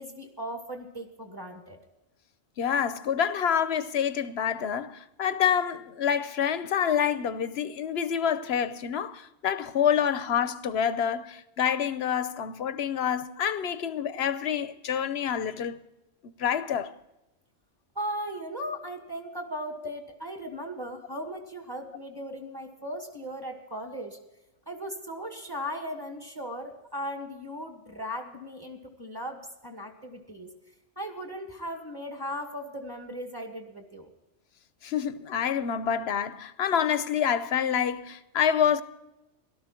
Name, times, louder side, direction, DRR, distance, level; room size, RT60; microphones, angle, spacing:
voice 1, 0.0-1.8 17.9-24.2 24.7-30.5 31.0-34.1, equal, 20° right, 2.3 m, -37 dB
voice 2, 2.6-15.8 16.4-16.9 34.8-38.8, left 8 dB, 65° left, 1.0 m, -27 dB
17.5 x 13.0 x 4.5 m
omnidirectional pair, 1.2 m